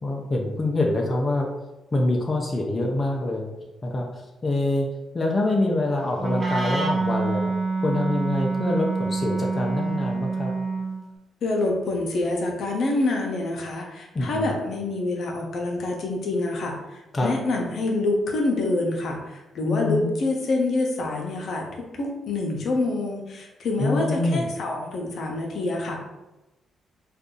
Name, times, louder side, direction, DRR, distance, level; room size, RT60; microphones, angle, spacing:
voice 1, 0.0-1.5 1.9-3.5 3.8-4.9 5.1-7.5 7.8-10.5 14.1-14.5 17.1-17.3 19.6-20.0 23.8-24.5, left 2 dB, 30° left, 0 dB, 0.5 m, -25 dB
Wind instrument woodwind instrument, 6.2-11.0, right 3 dB, 40° right, 0.5 m, -26 dB
voice 2, 11.4-21.7 21.9-26.0, left 2 dB, 65° left, 0 dB, 0.7 m, -26 dB
2.6 x 2.4 x 3.7 m, 1.0 s
cardioid pair, 80°, 0 cm